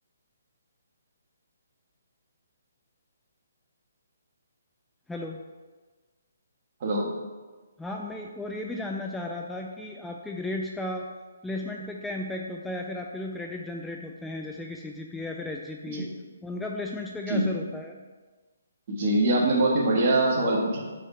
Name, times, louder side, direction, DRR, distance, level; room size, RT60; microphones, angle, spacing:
voice 1, 6.8-7.1 15.9-16.1 17.3-17.5 18.9-20.8, right 2 dB, 45° right, -2 dB, 1.5 m, -23 dB
voice 2, 7.8-11.1 11.4-16.1 16.4-18.0, left 2 dB, 5° left, 0 dB, 0.4 m, -35 dB
4.9 x 4.6 x 5.5 m, 1.3 s
hypercardioid pair, 145°, 0 cm